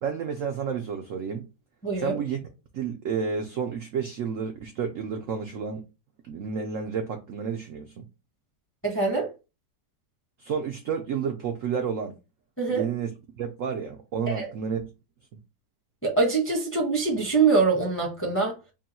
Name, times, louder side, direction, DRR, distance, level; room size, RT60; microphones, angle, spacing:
voice 1, 0.0-1.5 2.0-2.5 2.7-5.8 6.3-8.0 10.4-12.2 12.7-13.1 13.4-14.8, right 6 dB, 75° right, 0.7 m, -30 dB
voice 2, 1.8-2.2 8.8-9.3 12.6-12.9 14.3-14.5 16.0-18.6, right 4 dB, 10° left, 0.6 m, -24 dB
3.8 x 2.2 x 4.2 m
omnidirectional pair, 2.0 m